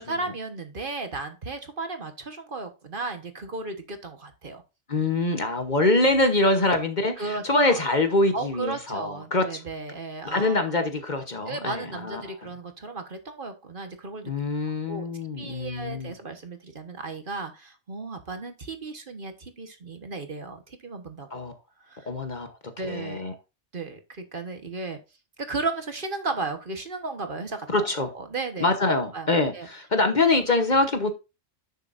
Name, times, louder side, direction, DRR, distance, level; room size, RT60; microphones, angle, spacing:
voice 1, 0.0-4.6 7.2-7.8 8.3-10.6 11.4-14.3 14.9-15.1 15.4-21.4 21.9-22.1 22.8-23.3 23.7-25.0 25.4-27.7 28.1-28.7 29.1-29.3 29.5-29.7, right 3 dB, 45° right, 7 dB, 1.4 m, -34 dB
voice 2, 4.9-9.6 10.2-12.2 14.2-16.1 21.3-21.5 22.1-22.5 22.9-23.3 27.7-28.1 28.6-31.1, left 2 dB, 40° left, 7 dB, 1.1 m, -24 dB
10.5 x 6.8 x 2.6 m, 0.27 s
omnidirectional pair, 1.3 m